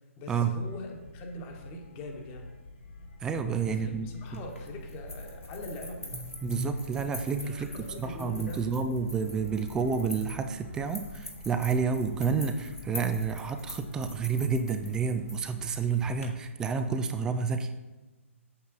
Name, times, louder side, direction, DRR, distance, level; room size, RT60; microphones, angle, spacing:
voice 1, 0.1-2.6 3.6-6.2 7.4-8.6, left 2 dB, 25° left, 2 dB, 1.3 m, -42 dB
sound 1, 0.6-13.8, left 1 dB, 40° left, 1.4 m, -47 dB
voice 2, 3.2-4.4 6.4-7.7 8.0-17.7, right 5 dB, 10° right, 8 dB, 0.4 m, -30 dB
sound 2, 4.2-16.3, left 2 dB, 80° left, 2.1 m, -45 dB
7.9 x 7.7 x 3.9 m, 1.2 s
figure-of-eight pair, 130°, 7 cm